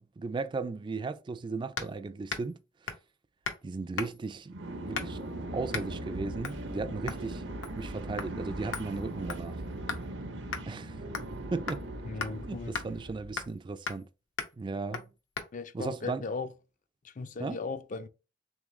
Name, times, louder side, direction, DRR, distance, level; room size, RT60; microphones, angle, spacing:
voice 1, 0.0-2.6 3.6-4.5 4.8-7.4 7.8-9.6 10.7-11.0 11.5-11.8 12.4-14.1 14.6-15.1 15.7-16.2 17.4-17.6, right 3 dB, 25° right, 0.3 m, -36 dB
sound 1, 1.8-2.0 2.3-2.5 2.9-3.1 3.4-3.6 4.0-4.3 4.9-5.3 5.7-5.9 6.4-6.6 7.1-7.3 7.6-7.9 8.2-8.3 8.7-10.1 10.5-10.6 11.1-11.4 11.7-11.8 12.2-12.3 12.7-12.9 13.4-13.6 13.9-14.1 14.4-14.5 14.9-15.1 15.4-15.5, left 5 dB, 75° left, 0.8 m, -37 dB
sound 2, 4.5-13.5, right 1 dB, 65° right, 0.7 m, -39 dB
voice 2, 12.0-12.7 15.5-16.5 17.0-18.1, left 4 dB, 45° left, 0.4 m, -37 dB
3.6 x 3.4 x 3.1 m
head